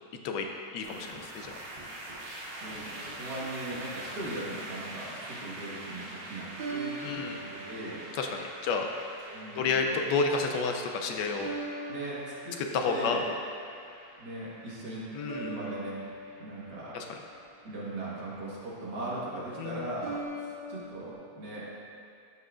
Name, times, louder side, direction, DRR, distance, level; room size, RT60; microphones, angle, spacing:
voice 1, 0.7-1.5 7.0-7.4 8.2-8.9 9.6-11.5 12.6-13.2 15.1-15.5 16.9-17.0 19.6-19.8, left 4 dB, 75° left, 3 dB, 1.2 m, -30 dB
sound 1, 0.8-20.0, right 1 dB, 40° right, 0.9 m, -45 dB
voice 2, 2.6-8.0 8.7-8.8 9.3-9.9 11.9-12.6 12.8-13.3 14.2-15.0 15.3-16.0 16.4-17.0 17.6-21.7, right 1 dB, 60° right, -7 dB, 2.2 m, -39 dB
sound 2, 2.8-3.6 6.6-8.6 9.2-9.7 11.4-13.4 15.3-17.7 20.0-21.1, right 2 dB, 85° right, 1.7 m, -41 dB
12.5 x 5.6 x 2.5 m, 2.5 s
omnidirectional pair, 2.0 m